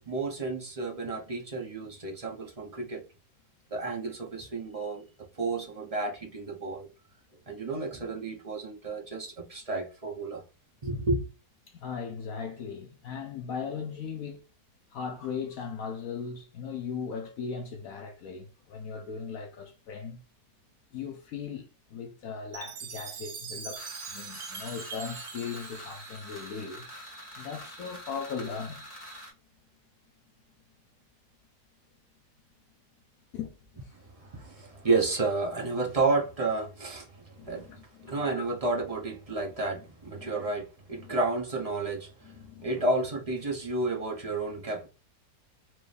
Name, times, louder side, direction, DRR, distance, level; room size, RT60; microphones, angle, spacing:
voice 1, 0.1-3.0 3.7-5.0 5.4-6.9 7.5-10.4 10.8-11.2 34.2-37.7 38.1-42.3 42.6-44.9, right 3 dB, 30° right, 0.7 m, -31 dB
voice 2, 11.7-14.4 14.9-20.2 20.9-26.9 27.4-28.8 33.3-33.6 33.8-33.9 37.4-38.4 40.1-40.4 41.0-41.1 42.2-42.8, left 6 dB, 65° left, 1.0 m, -38 dB
Chime, 22.5-26.8, right 6 dB, 85° right, 0.4 m, -42 dB
sound 1, 23.7-29.3, equal, 20° left, 1.6 m, -45 dB
4.6 x 2.7 x 3.3 m
omnidirectional pair, 1.7 m